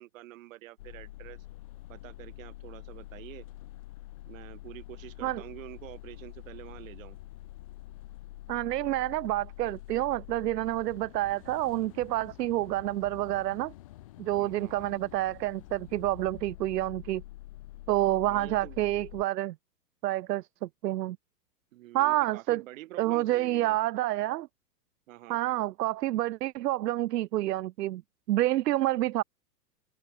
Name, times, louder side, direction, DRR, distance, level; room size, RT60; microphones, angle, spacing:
voice 1, 0.0-1.4 1.9-3.5 4.2-7.2 14.4-14.9 18.2-18.8 21.7-23.8 25.1-25.4, right 16 dB, 50° right, 4.5 m, -47 dB
sound 1, 0.8-19.2, left 17 dB, 25° left, 0.4 m, -47 dB
voice 2, 8.5-13.7 14.2-17.2 17.9-19.6 20.0-21.2 21.9-22.6 23.0-24.5 25.3-28.0 28.3-29.2, right 15 dB, 75° right, 0.6 m, -28 dB
hypercardioid pair, 130°, 49 cm